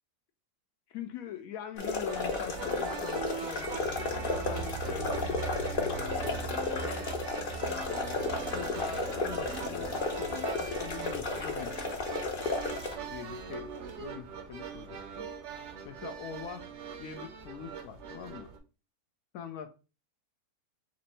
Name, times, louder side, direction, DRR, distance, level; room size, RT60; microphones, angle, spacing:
voice 1, 0.9-7.1 7.6-8.0 8.5-11.8 13.1-13.7 14.0-15.3 15.8-16.7 17.0-18.5 19.3-19.7, left 8 dB, 75° left, 1.0 m, -43 dB
sound 1, 1.8-12.9, left 3 dB, 45° left, 0.8 m, -33 dB
sound 2, 2.1-18.6, right 6 dB, 60° right, 0.9 m, -42 dB
sound 3, 3.4-13.8 14.2-14.5, right 5 dB, 85° right, 2.1 m, -43 dB
4.3 x 2.6 x 4.0 m
omnidirectional pair, 1.6 m